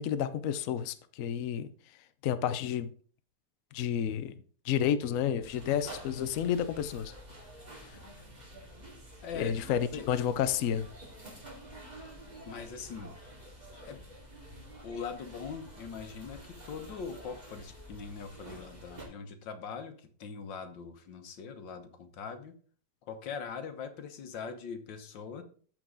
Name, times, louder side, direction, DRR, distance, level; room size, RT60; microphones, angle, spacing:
voice 1, 0.0-1.7 2.2-2.9 3.7-4.4 4.6-7.1 7.8-8.0 9.3-10.9, left 9 dB, 65° left, 0.8 m, -30 dB
sound 1, 5.4-19.1, right 1 dB, 25° right, 2.5 m, -49 dB
voice 2, 9.2-9.6 9.9-10.2 12.5-13.1 13.8-14.0 14.8-22.5 23.0-25.4, left 6 dB, 80° left, 1.8 m, -41 dB
13.5 x 4.6 x 3.8 m
omnidirectional pair, 2.0 m